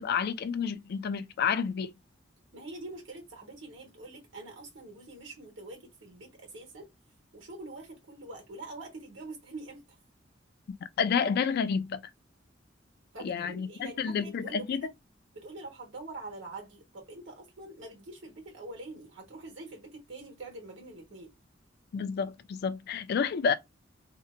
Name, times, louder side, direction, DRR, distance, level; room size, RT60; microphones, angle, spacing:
voice 1, 0.0-1.9 11.0-12.0 13.2-13.7 14.0-14.9 21.9-23.5, left 6 dB, 55° left, 0.3 m, -29 dB
voice 2, 2.5-6.9 7.3-9.8 13.1-14.9 15.3-21.3, right 2 dB, 80° right, 1.2 m, -45 dB
2.8 x 2.1 x 2.4 m
head